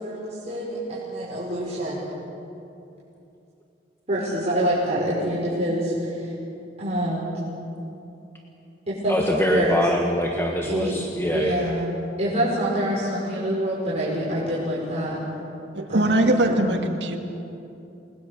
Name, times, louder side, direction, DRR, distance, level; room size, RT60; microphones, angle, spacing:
voice 1, 0.0-2.1 4.1-6.3 6.8-7.4 8.9-9.8 10.6-11.0 11.3-11.9 12.2-15.2 15.9-16.7, right 1 dB, 40° right, -8 dB, 5.5 m, -26 dB
voice 2, 9.1-11.7, equal, 15° left, 1 dB, 1.5 m, -24 dB
voice 3, 15.7-17.2, right 1 dB, 70° right, 4 dB, 2.3 m, -21 dB
29.0 x 20.5 x 6.7 m, 2.8 s
head